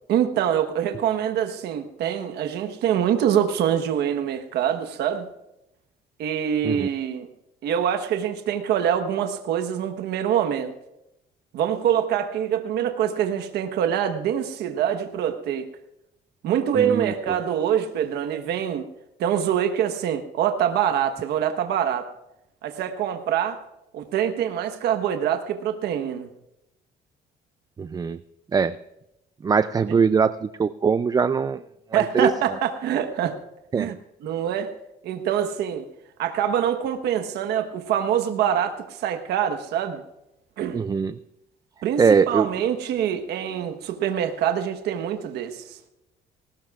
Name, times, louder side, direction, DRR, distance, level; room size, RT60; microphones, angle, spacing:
voice 1, 0.1-5.3 6.2-7.3 7.6-10.7 11.5-15.7 16.4-18.8 19.2-22.1 22.6-23.6 23.9-26.3 29.9-30.0 31.9-33.4 33.7-33.9 34.2-34.7 35.0-35.9 36.2-40.0 40.6-40.8 41.8-45.8, right 9 dB, 75° right, 6 dB, 1.2 m, -25 dB
voice 2, 16.7-17.4 27.8-28.2 28.5-28.8 29.4-30.3 30.6-31.6 31.9-32.3 33.7-33.9 40.7-41.2 42.0-42.5, right 5 dB, 20° right, 13 dB, 0.4 m, -21 dB
20.0 x 18.0 x 2.4 m, 0.86 s
cardioid pair, 110°, 17 cm